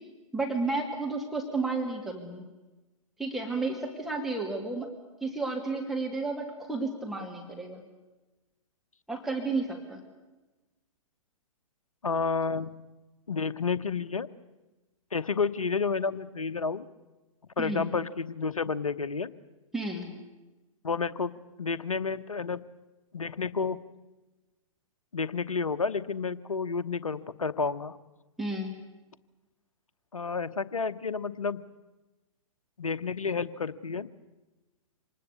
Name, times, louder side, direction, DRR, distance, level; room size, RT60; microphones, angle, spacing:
voice 1, 0.3-2.4 3.2-4.9 5.2-7.8 9.1-10.0 17.6-17.9 19.7-20.1 28.4-28.7, right 3 dB, ahead, 1 dB, 2.5 m, -32 dB
voice 2, 12.0-12.7 13.3-14.3 15.1-16.9 17.6-19.3 20.8-21.3 21.6-22.6 23.1-23.8 25.1-28.0 30.1-31.6 32.8-34.1, left 5 dB, 75° left, 14 dB, 1.1 m, -30 dB
26.0 x 20.0 x 8.3 m, 1.1 s
figure-of-eight pair, 115°, 18 cm